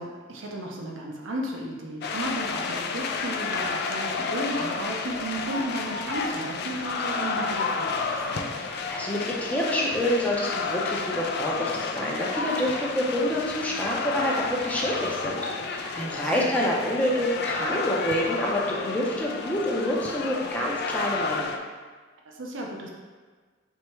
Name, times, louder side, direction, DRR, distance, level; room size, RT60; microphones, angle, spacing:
voice 1, 0.0-8.6 16.0-16.5 22.3-22.9, right 1 dB, 70° right, 0 dB, 0.6 m, -34 dB
sound 1, 2.0-21.6, left 4 dB, 55° left, 0.3 m, -31 dB
voice 2, 8.6-21.5, equal, 5° left, -4 dB, 0.6 m, -27 dB
4.6 x 3.2 x 3.1 m, 1.4 s
head